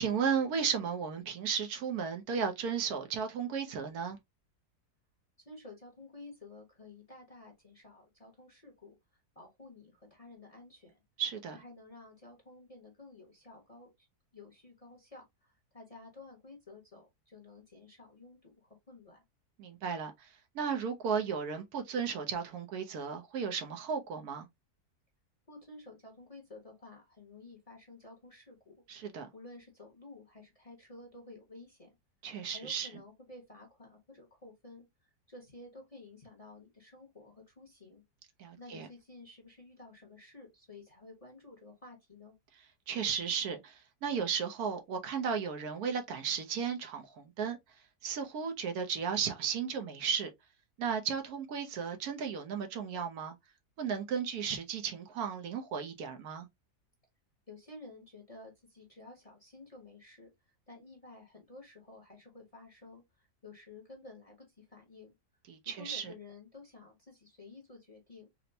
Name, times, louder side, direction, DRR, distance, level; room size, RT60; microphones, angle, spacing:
voice 1, 0.0-4.2 11.2-11.6 19.6-24.5 28.9-29.3 32.2-32.9 38.4-38.9 42.9-47.6 48.0-50.3 50.8-53.3 53.8-56.5 65.5-66.1, right 6 dB, 70° right, 1.1 m, -34 dB
voice 2, 5.4-9.0 9.3-11.0 11.5-14.1 14.3-19.2 25.5-28.8 29.3-31.9 32.5-38.0 38.6-42.3 57.5-60.3 60.7-65.1 65.7-68.3, left 2 dB, 30° left, 0.8 m, -52 dB
4.2 x 2.0 x 2.6 m
omnidirectional pair, 1.7 m